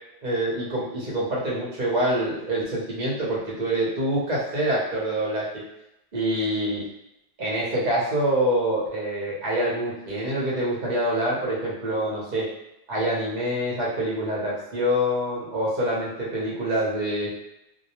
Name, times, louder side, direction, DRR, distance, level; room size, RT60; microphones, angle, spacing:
voice 1, 0.2-5.6 6.1-6.8 7.4-12.5 12.9-17.3, right 1 dB, 45° right, -6 dB, 0.7 m, -26 dB
2.2 x 2.0 x 2.9 m, 0.87 s
omnidirectional pair, 1.3 m